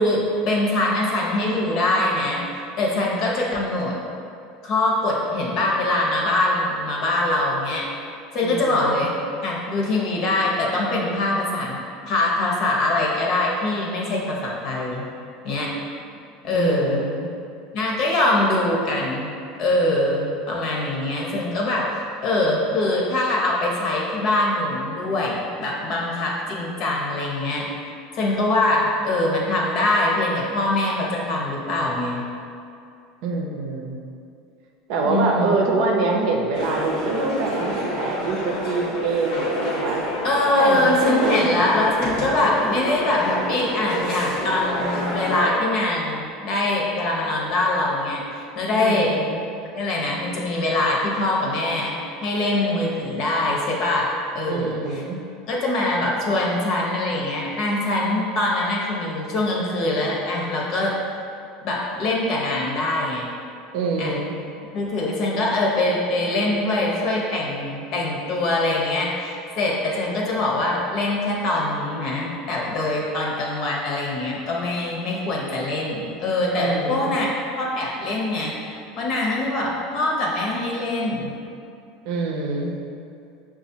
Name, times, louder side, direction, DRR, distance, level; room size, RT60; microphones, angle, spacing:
voice 1, 0.0-2.4 2.8-4.0 4.6-7.8 8.3-9.1 9.4-11.8 12.1-15.0 15.4-15.7 16.4-17.1 17.7-19.3 19.6-21.9 22.2-27.7 28.2-32.2 35.0-35.5 40.2-49.1 49.7-54.1 54.3-55.0 55.5-60.9 61.6-63.3 64.0-64.1 64.7-77.3 77.6-81.3, left 2 dB, 55° left, -3 dB, 1.0 m, -23 dB
voice 2, 8.4-9.1 16.5-17.3 33.2-34.0 34.9-40.0 40.6-41.5 48.8-49.4 54.5-55.2 63.7-64.3 76.6-77.2 82.0-82.8, right 3 dB, 65° right, 1 dB, 0.6 m, -25 dB
sound 1, 36.5-45.5, equal, 75° left, 1.2 m, -28 dB
6.0 x 2.4 x 2.8 m, 2.5 s
supercardioid pair, 100°, 0 cm